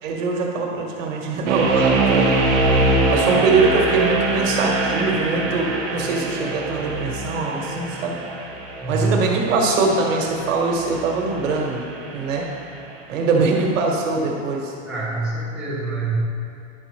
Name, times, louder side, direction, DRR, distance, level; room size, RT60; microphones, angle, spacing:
voice 1, 0.0-2.4 3.1-8.2 8.9-11.8 12.1-12.5 13.1-14.7, right 4 dB, 70° right, 0 dB, 1.4 m, -22 dB
sound 1, 1.5-12.5, right 2 dB, 35° right, 1.2 m, -23 dB
voice 2, 8.8-9.3 14.8-16.1, right 2 dB, ahead, -9 dB, 1.2 m, -25 dB
10.5 x 4.2 x 3.2 m, 2.5 s
supercardioid pair, 160°, 39 cm